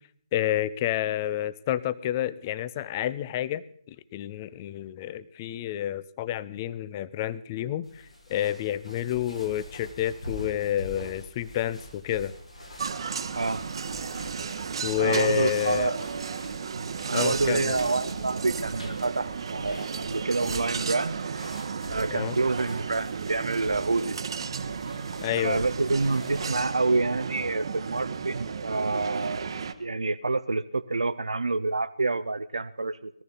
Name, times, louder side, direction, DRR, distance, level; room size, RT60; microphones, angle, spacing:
voice 1, 0.3-7.9 8.3-12.3 14.8-15.9 17.1-17.8 22.1-22.4 25.2-25.6, left 12 dB, 25° left, 17 dB, 0.5 m, -29 dB
sound 1, 7.8-26.8, left 1 dB, 85° left, 5.2 m, -45 dB
sound 2, 12.8-29.7, right 6 dB, 50° right, 1.0 m, -34 dB
voice 2, 15.0-16.0 16.7-21.2 21.9-24.2 25.3-29.5 29.8-33.1, right 3 dB, 75° right, 13 dB, 0.6 m, -27 dB
18.5 x 14.0 x 4.0 m, 0.65 s
figure-of-eight pair, 145°, 3 cm